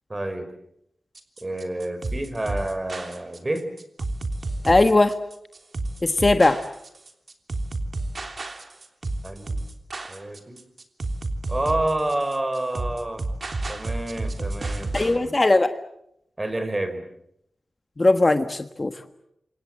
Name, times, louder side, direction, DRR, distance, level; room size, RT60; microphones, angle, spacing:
voice 1, 0.1-0.5 1.4-3.7 9.2-9.6 10.1-10.6 11.5-13.3 13.7-15.4 16.4-17.0, right 1 dB, 25° right, 10 dB, 4.3 m, -29 dB
sound 1, 1.1-15.2, right 2 dB, 50° right, 3.3 m, -31 dB
voice 2, 4.6-5.1 6.0-6.6 14.9-15.7 18.0-18.9, left 2 dB, 30° left, 8 dB, 1.4 m, -19 dB
28.5 x 26.0 x 7.6 m, 0.76 s
wide cardioid pair, 105°, 0 cm